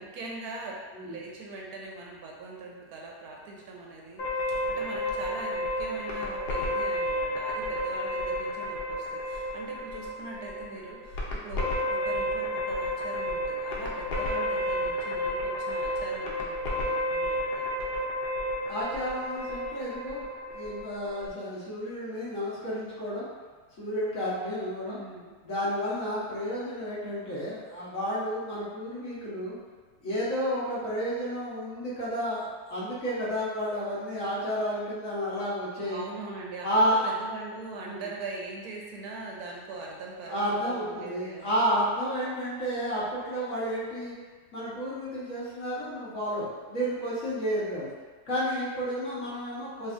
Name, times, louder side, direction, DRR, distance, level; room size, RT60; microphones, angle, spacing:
voice 1, 0.0-17.7 24.9-25.4 35.8-41.6, right 3 dB, 75° right, -2 dB, 1.1 m, -41 dB
sound 1, 4.2-21.3, equal, 75° left, 1.3 m, -31 dB
voice 2, 18.7-23.3 23.8-25.0 25.4-29.6 30.0-36.0 36.6-37.1 37.8-38.1 40.3-44.1 44.5-47.9 48.2-49.9, equal, 55° left, -9 dB, 1.5 m, -31 dB
5.4 x 2.6 x 2.5 m, 1.4 s
omnidirectional pair, 1.8 m